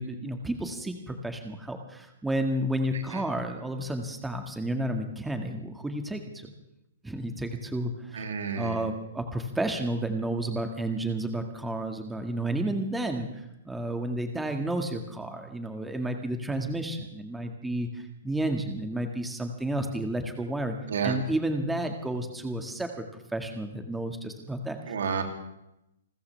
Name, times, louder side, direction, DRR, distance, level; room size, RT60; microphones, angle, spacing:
voice 1, 0.0-6.5 7.0-8.3 8.6-20.7 21.0-24.9, right 1 dB, 5° right, 5 dB, 1.9 m, -31 dB
voice 2, 8.1-8.8 20.9-21.2 24.9-25.2, right 6 dB, 70° right, 4 dB, 3.0 m, -30 dB
29.0 x 14.0 x 3.5 m, 0.84 s
hypercardioid pair, 125°, 0 cm